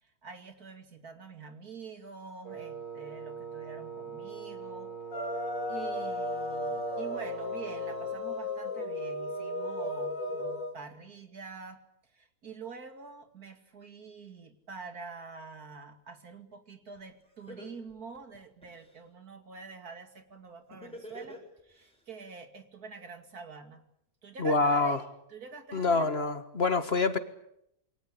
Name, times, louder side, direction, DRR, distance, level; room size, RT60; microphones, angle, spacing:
voice 1, 0.0-4.9 5.7-11.8 12.1-23.8 24.2-26.2, right 4 dB, 90° right, 7 dB, 3.0 m, -46 dB
Wind instrument woodwind instrument, 2.4-8.2, right 6 dB, 35° right, 2.6 m, -43 dB
sound 1, 5.1-10.7, left 1 dB, 60° left, 3.3 m, -35 dB
Laughter, 16.9-17.0 17.5-18.9 20.7-21.9, equal, 5° left, 6.9 m, -45 dB
voice 2, 24.4-25.0 25.7-27.2, left 3 dB, 45° left, 10 dB, 1.9 m, -26 dB
28.0 x 22.5 x 8.5 m, 0.76 s
omnidirectional pair, 1.5 m